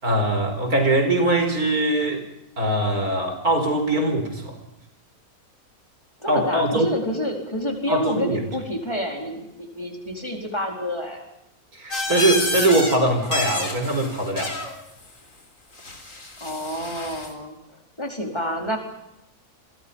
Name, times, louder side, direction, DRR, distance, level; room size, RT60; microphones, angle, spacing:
voice 1, 0.0-2.3 2.6-4.6 6.3-6.9 7.9-8.4 11.7-14.6, right 1 dB, 85° right, 6 dB, 5.3 m, -22 dB
voice 2, 6.2-11.2 16.4-18.8, equal, 20° left, 1 dB, 4.5 m, -29 dB
sound 1, 11.9-13.0 13.2-14.7 15.8-17.3, left 2 dB, 60° left, 4.3 m, -29 dB
30.0 x 22.5 x 5.6 m, 0.86 s
omnidirectional pair, 1.5 m